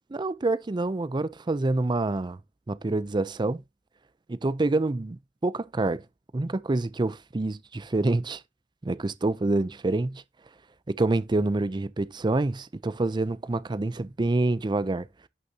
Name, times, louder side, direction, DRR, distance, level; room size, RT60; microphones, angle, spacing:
voice 1, 0.1-2.4 2.7-3.6 4.3-6.0 6.3-8.4 8.8-10.2 10.9-15.1, right 2 dB, 25° right, 0.5 m, -27 dB
11.0 x 6.5 x 2.8 m
head